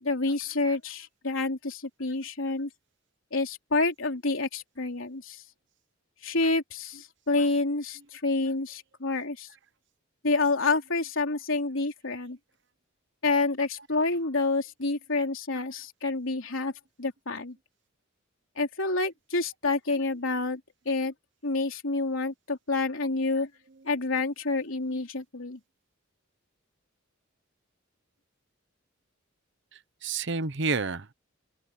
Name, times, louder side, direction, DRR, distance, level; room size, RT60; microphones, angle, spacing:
voice 1, 0.0-2.7 3.3-5.4 6.2-9.5 10.2-12.4 13.2-16.7 17.0-17.6 18.6-20.6 20.9-21.1 21.4-23.5 23.8-25.6, left 3 dB, 75° left, 3.3 m, -28 dB
voice 2, 29.7-31.1, right 4 dB, 60° right, 1.0 m, -30 dB
open air
head